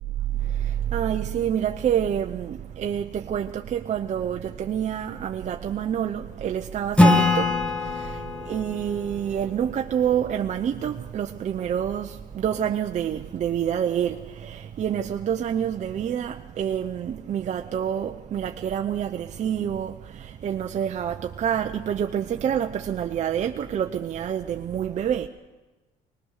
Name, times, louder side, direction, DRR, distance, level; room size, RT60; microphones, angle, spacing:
voice 1, 0.6-7.5 7.8-8.2 8.4-25.3, right 9 dB, 45° right, 0.7 m, -27 dB
Acoustic guitar / Strum, 7.0-10.4, left 2 dB, 5° left, 1.6 m, -23 dB
21.5 x 19.5 x 6.5 m
cardioid pair, 110°, 17 cm